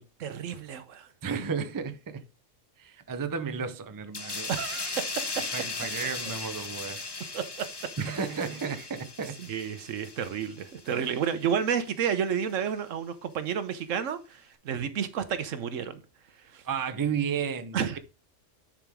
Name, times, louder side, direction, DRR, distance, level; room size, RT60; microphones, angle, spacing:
voice 1, 0.2-1.1 4.5-5.1 7.3-7.7 9.4-16.0 16.5-16.6 17.7-18.0, right 7 dB, 80° right, 1.2 m, -31 dB
voice 2, 1.2-2.2 2.8-4.5 5.5-7.0 7.2-7.4 8.0-9.4 10.9-11.2 16.7-18.0, right 6 dB, 25° right, 0.5 m, -33 dB
sound 1, 4.1-11.3 11.7-11.9, left 3 dB, 25° left, 0.6 m, -37 dB
10.0 x 5.1 x 3.5 m
omnidirectional pair, 1.3 m